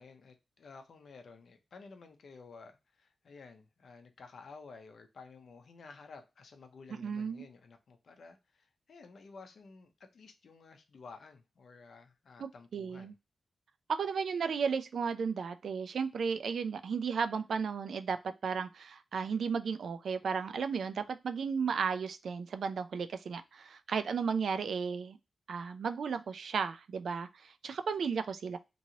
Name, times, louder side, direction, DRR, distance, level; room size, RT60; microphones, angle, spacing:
voice 1, 0.0-13.1, left 4 dB, 60° left, 0.6 m, -53 dB
voice 2, 6.9-7.4 12.4-13.1 13.9-25.2 25.5-28.6, right 6 dB, 65° right, 0.3 m, -34 dB
3.0 x 2.7 x 2.8 m
wide cardioid pair, 170°, 0 cm